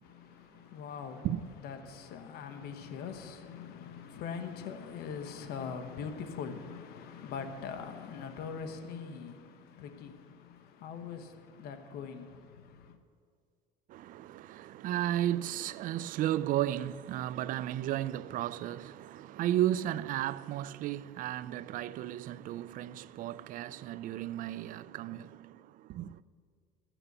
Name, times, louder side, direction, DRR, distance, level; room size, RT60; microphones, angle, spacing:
voice 1, 0.0-1.3 1.6-13.0, left 6 dB, 65° left, 1.1 m, -42 dB
voice 2, 13.9-26.2, right 12 dB, 50° right, 0.4 m, -34 dB
13.5 x 9.0 x 6.7 m
cardioid pair, 125°, 18 cm